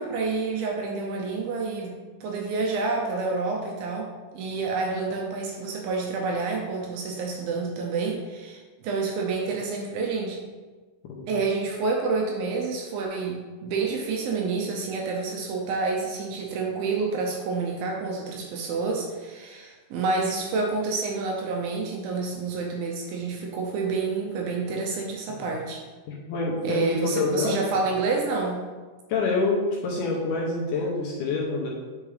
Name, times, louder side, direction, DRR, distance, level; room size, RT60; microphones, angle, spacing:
voice 1, 0.0-2.0 2.2-4.1 4.3-10.4 11.3-25.8 26.6-28.6, right 4 dB, 75° right, 0 dB, 2.3 m, -28 dB
voice 2, 26.1-27.6 29.1-31.7, left 3 dB, 80° left, -3 dB, 1.8 m, -26 dB
8.3 x 5.1 x 3.3 m, 1.4 s
omnidirectional pair, 4.7 m